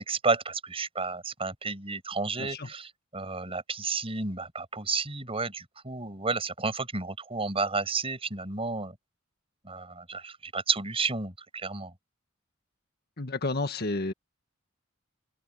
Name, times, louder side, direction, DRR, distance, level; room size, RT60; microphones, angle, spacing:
voice 1, 0.0-9.0 9.6-11.9, right 4 dB, 30° right, 6.8 m, -31 dB
voice 2, 2.4-2.7 13.2-14.1, left 2 dB, 50° left, 1.6 m, -31 dB
open air
head